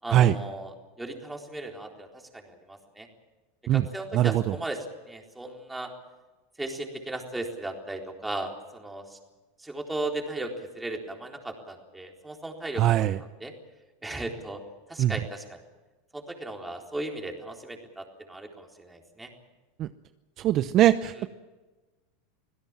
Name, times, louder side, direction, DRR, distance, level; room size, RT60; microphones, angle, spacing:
voice 1, 0.0-3.1 3.7-5.9 6.6-9.2 9.6-13.5 14.0-14.6 14.9-15.6 16.1-19.3 21.1-21.3, right 2 dB, 10° right, 2 dB, 4.0 m, -36 dB
voice 2, 12.8-13.2 15.0-15.1 19.8-19.9 20.4-21.3, right 12 dB, 45° right, 12 dB, 0.8 m, -21 dB
26.0 x 16.5 x 7.5 m, 1.2 s
supercardioid pair, 115°, 0 cm